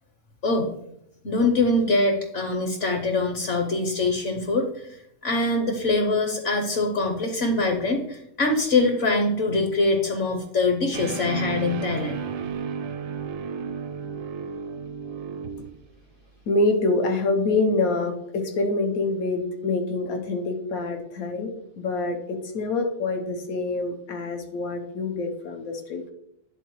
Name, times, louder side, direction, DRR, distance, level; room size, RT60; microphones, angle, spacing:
voice 1, 0.4-0.7 1.2-12.2, left 2 dB, 60° left, 3 dB, 1.1 m, -24 dB
sound 1, 10.9-15.9, right 6 dB, 70° right, 0.9 m, -33 dB
voice 2, 16.5-26.1, left 3 dB, 90° left, 4 dB, 1.4 m, -26 dB
10.5 x 3.9 x 3.0 m, 0.78 s
omnidirectional pair, 1.5 m